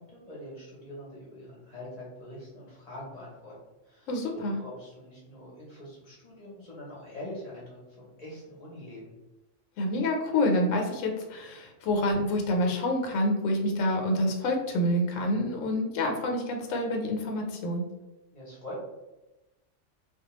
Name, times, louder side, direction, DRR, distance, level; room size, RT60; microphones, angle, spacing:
voice 1, 0.0-3.5 3.8-9.1 18.3-18.8, left 1 dB, 40° left, -5 dB, 0.7 m, -44 dB
voice 2, 4.1-4.5 9.8-17.8, left 1 dB, 85° left, 2 dB, 0.9 m, -27 dB
2.3 x 2.2 x 2.9 m, 1.0 s
omnidirectional pair, 1.3 m